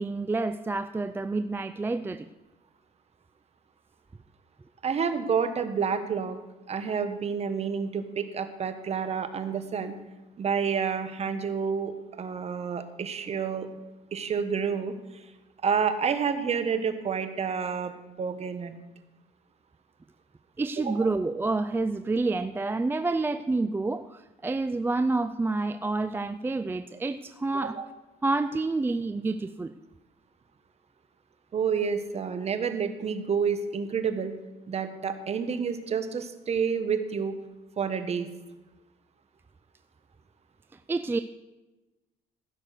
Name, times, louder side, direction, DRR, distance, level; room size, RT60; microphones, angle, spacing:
voice 1, 0.0-2.3 20.6-27.8 28.2-29.7 40.9-41.2, right 3 dB, 15° right, 10 dB, 0.4 m, -28 dB
voice 2, 4.8-6.4 6.7-9.9 10.4-13.7 14.1-14.9 15.6-17.9 18.2-18.8 20.8-21.1 27.5-27.8 31.5-34.3 34.7-37.4 37.8-38.3, right 6 dB, 40° right, 10 dB, 1.3 m, -29 dB
15.5 x 6.1 x 6.6 m, 1.1 s
cardioid pair, 110°, 17 cm